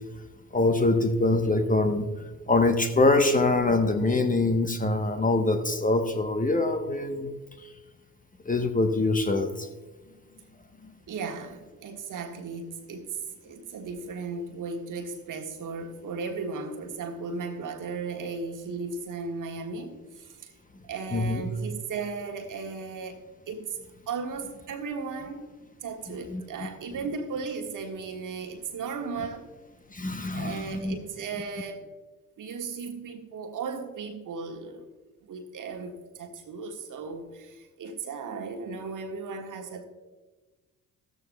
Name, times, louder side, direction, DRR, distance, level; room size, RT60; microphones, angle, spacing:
voice 1, 0.5-2.1 2.5-7.3 7.6-7.7 8.5-9.7 21.1-21.4 26.3-26.4 29.9-30.9, left 2 dB, 20° left, 7 dB, 1.0 m, -24 dB
voice 2, 11.1-20.5 20.8-23.2 23.5-23.8 24.1-25.5 25.8-29.5 30.3-31.9 32.4-34.8 35.2-39.8, right 4 dB, 50° right, 5 dB, 1.5 m, -36 dB
14.0 x 13.5 x 2.3 m, 1.2 s
figure-of-eight pair, 50°, 41 cm